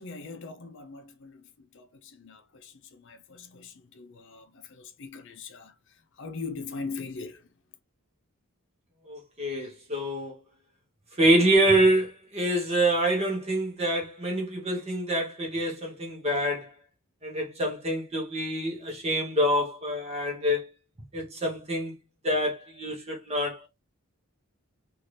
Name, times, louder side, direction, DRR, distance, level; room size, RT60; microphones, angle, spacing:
voice 1, 0.0-5.7 6.2-7.4, left 4 dB, 55° left, 0.5 m, -41 dB
voice 2, 9.1-10.4 11.2-16.7 17.2-20.7 21.1-22.0 22.2-23.7, right 1 dB, 30° right, 0.9 m, -26 dB
2.7 x 2.5 x 3.1 m
head